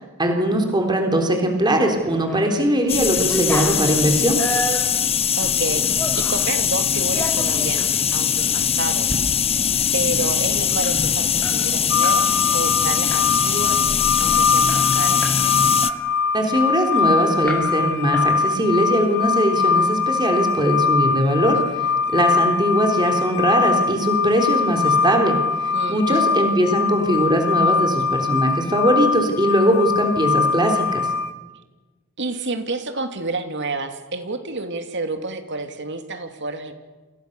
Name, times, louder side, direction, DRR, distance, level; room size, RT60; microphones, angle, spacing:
voice 1, 0.2-4.4 16.3-21.6 22.1-31.1, right 1 dB, 20° right, 3 dB, 3.8 m, -20 dB
sound 1, 2.0-2.5 2.9-6.5 7.0-7.9 8.4-8.5 8.9-9.2 9.5-9.6 9.9-12.2 12.5-12.7 13.1-13.5 14.0-14.1 14.3-15.5 15.8-17.0 17.4-17.9 18.1-18.8, equal, 10° left, 5.3 m, -32 dB
sound 2, 2.9-15.9, left 8 dB, 25° left, 0.9 m, -21 dB
voice 2, 5.4-5.9 6.2-9.1 9.9-13.8 14.2-15.2 25.7-26.3 32.2-36.7, right 3 dB, 55° right, 6 dB, 2.8 m, -29 dB
sound 3, 11.9-31.3, left 5 dB, 50° left, 1.2 m, -22 dB
30.0 x 27.5 x 6.8 m, 1.2 s
head